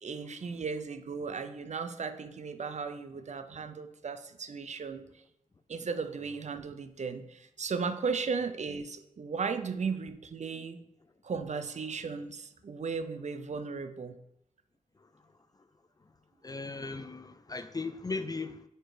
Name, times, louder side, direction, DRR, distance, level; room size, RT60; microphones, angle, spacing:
voice 1, 0.0-5.0 5.7-10.8 11.2-14.2 16.8-16.9, right 5 dB, 55° right, 0.5 m, -36 dB
voice 2, 16.4-18.6, left 3 dB, 25° left, 0.4 m, -37 dB
4.4 x 4.4 x 4.9 m
cardioid pair, 70°, 15 cm